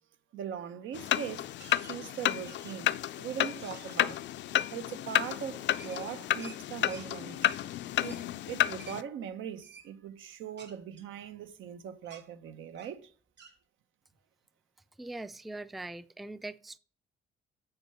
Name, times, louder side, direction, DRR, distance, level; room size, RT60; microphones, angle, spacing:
voice 1, 0.3-1.5 1.8-4.3 4.7-7.5 8.0-13.1, right 8 dB, 80° right, 0.8 m, -41 dB
sound 1, 0.9-9.0, left 12 dB, 65° left, 0.4 m, -31 dB
sound 2, 1.6-2.0 2.4-2.9 3.4-4.0 5.8-7.1 7.4-7.6 8.0-8.2 8.8-9.0 9.6-9.9 10.6-11.7 12.0-12.3 12.7-13.0 13.4-13.5, right 5 dB, 60° right, 2.1 m, -52 dB
voice 2, 15.0-16.8, right 2 dB, ahead, 0.4 m, -41 dB
7.9 x 4.7 x 5.5 m
cardioid pair, 90°, 20 cm